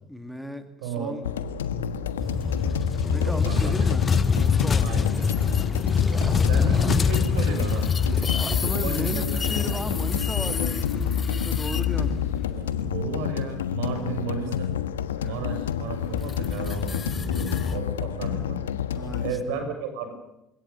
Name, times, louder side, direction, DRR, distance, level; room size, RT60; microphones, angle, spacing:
voice 1, 0.1-1.3 3.1-4.1 4.3-4.9 8.4-12.2 13.9-14.3 15.2-15.4 18.9-19.6, equal, ahead, 8 dB, 2.3 m, -36 dB
voice 2, 0.8-1.2 3.2-3.9 4.8-5.1 6.1-7.9 8.8-9.5 12.4-14.5 15.2-18.6 19.2-20.1, right 4 dB, 70° right, 6 dB, 7.2 m, -33 dB
sound 1, 1.2-19.3, left 8 dB, 85° left, 1.4 m, -30 dB
sound 2, 2.2-13.1 16.0-17.8, left 6 dB, 30° left, 0.9 m, -25 dB
sound 3, 3.4-7.3 7.6-9.8, right 2 dB, 15° right, 4.1 m, -42 dB
30.0 x 17.0 x 7.1 m, 0.85 s
hypercardioid pair, 70°, 0 cm